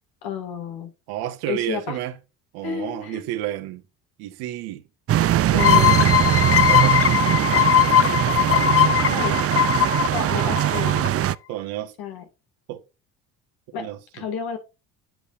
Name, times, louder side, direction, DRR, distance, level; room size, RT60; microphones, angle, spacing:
voice 1, 0.2-0.9 1.5-2.0 2.6-3.2 5.5-6.3 8.5-9.4 10.1-11.2 12.0-12.2 13.7-13.9 14.1-14.6, left 7 dB, 75° left, 2.4 m, -31 dB
voice 2, 1.1-2.2 2.5-3.8 4.2-4.8 6.6-7.0 9.3-9.5 11.5-11.9 12.7-12.8 13.8-14.0, right 13 dB, 80° right, 1.5 m, -30 dB
sound 1, 5.1-11.4, right 12 dB, 40° right, 0.5 m, -21 dB
sound 2, 5.6-11.1, left 11 dB, 40° left, 0.9 m, -19 dB
8.2 x 7.8 x 2.6 m
supercardioid pair, 70°, 37 cm